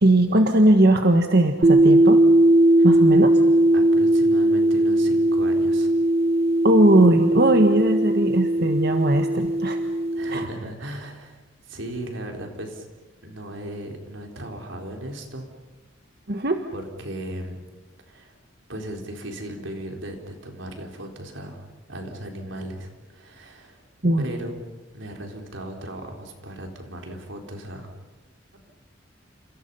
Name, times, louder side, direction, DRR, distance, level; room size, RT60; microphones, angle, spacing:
voice 1, 0.0-2.2 2.8-3.4 6.6-9.8 10.3-10.5 16.3-16.6 24.0-24.2, right 1 dB, 55° right, 5 dB, 1.5 m, -19 dB
sound 1, 1.6-10.5, right 1 dB, 35° right, 1.1 m, -19 dB
voice 2, 3.7-5.9 10.1-11.4 11.7-12.9 13.2-15.5 16.7-17.6 18.1-18.3 18.7-23.8 24.2-24.6 24.9-27.9, right 1 dB, 85° right, 3 dB, 4.4 m, -37 dB
30.0 x 28.5 x 5.7 m, 1.2 s
head